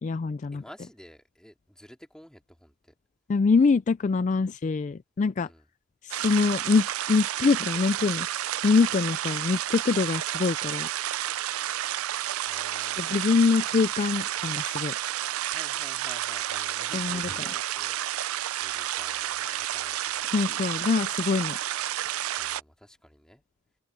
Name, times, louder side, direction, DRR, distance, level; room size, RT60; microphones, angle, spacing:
voice 1, 0.0-0.6 3.3-5.5 6.0-8.3 8.6-10.9 13.0-14.9 16.9-17.2 20.3-21.6 22.0-22.1, left 4 dB, 35° left, 0.3 m, -24 dB
voice 2, 0.5-2.9 5.4-5.6 12.4-13.8 15.4-18.2 18.6-20.3 20.7-20.9 22.4-23.4, equal, 5° left, 2.4 m, -51 dB
sound 1, 6.1-22.6, right 12 dB, 90° right, 0.5 m, -31 dB
open air
head